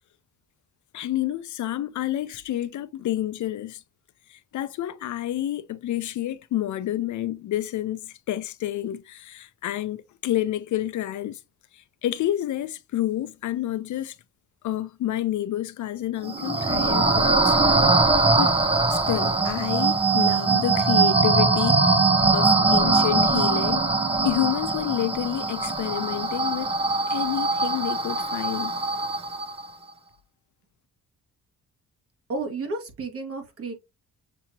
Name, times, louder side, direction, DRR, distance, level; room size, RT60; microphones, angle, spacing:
voice 1, 0.9-3.8 4.3-11.4 11.7-14.2 14.6-17.6 18.1-18.5 18.9-22.0 22.3-23.8 24.2-26.7 27.1-28.8, left 13 dB, 65° left, 0.5 m, -29 dB
sound 1, 16.2-29.7, right 3 dB, 20° right, 0.7 m, -22 dB
voice 2, 32.3-33.7, right 3 dB, 45° right, 1.7 m, -32 dB
7.0 x 2.8 x 2.7 m
cardioid pair, 120°, 32 cm